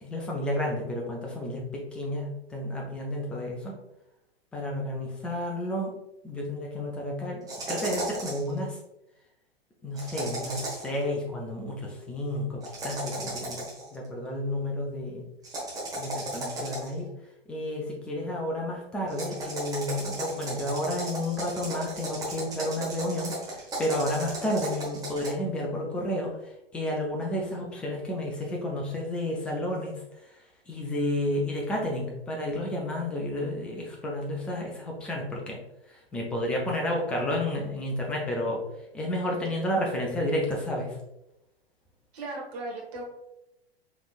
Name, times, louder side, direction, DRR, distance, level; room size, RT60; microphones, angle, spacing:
voice 1, 0.0-3.7 4.5-5.9 6.2-8.8 9.8-13.6 13.9-15.2 16.0-17.1 17.5-26.3 26.7-29.9 30.7-35.6 35.9-38.6 38.9-41.0, left 1 dB, 5° left, -1 dB, 0.3 m, -31 dB
sound 1, 7.5-8.5 9.9-10.9 12.6-13.9 15.4-17.0 19.1-25.3, right 2 dB, 10° right, 1.1 m, -35 dB
voice 2, 42.1-43.0, right 2 dB, 40° right, -2 dB, 1.4 m, -36 dB
4.8 x 3.3 x 2.4 m, 0.88 s
figure-of-eight pair, 105°, 31 cm